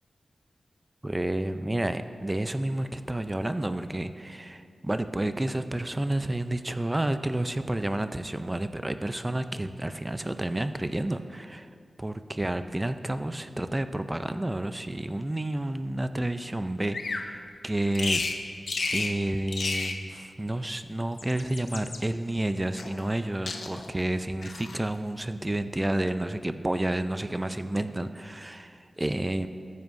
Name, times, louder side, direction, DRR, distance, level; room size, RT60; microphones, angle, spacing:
voice 1, 1.0-11.7 12.0-18.2 18.9-29.5, right 1 dB, 15° right, 10 dB, 0.4 m, -30 dB
Bird vocalization bird call bird song, 16.9-17.3 17.9-18.4 18.7-19.2 19.5-20.0 21.0-22.0 22.8-23.2 23.5-23.9 24.4-24.8, left 3 dB, 60° left, 0.7 m, -32 dB
19.5 x 9.4 x 2.6 m, 2.3 s
wide cardioid pair, 140°, 0 cm